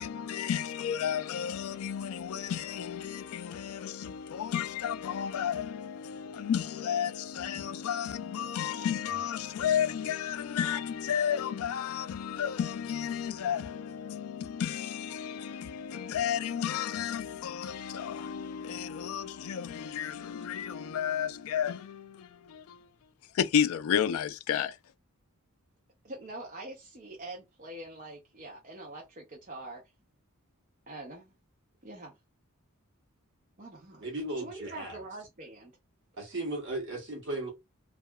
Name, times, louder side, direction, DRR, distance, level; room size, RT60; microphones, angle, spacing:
voice 1, 0.0-22.8 23.3-24.8, left 8 dB, 70° left, 0.3 m, -32 dB
voice 2, 26.0-29.8 30.9-31.3 31.8-32.2 33.6-34.0 34.4-35.7, right 2 dB, 35° right, 0.6 m, -44 dB
voice 3, 34.0-35.0 36.2-37.5, right 2 dB, 55° right, 1.0 m, -36 dB
2.8 x 2.3 x 2.2 m
head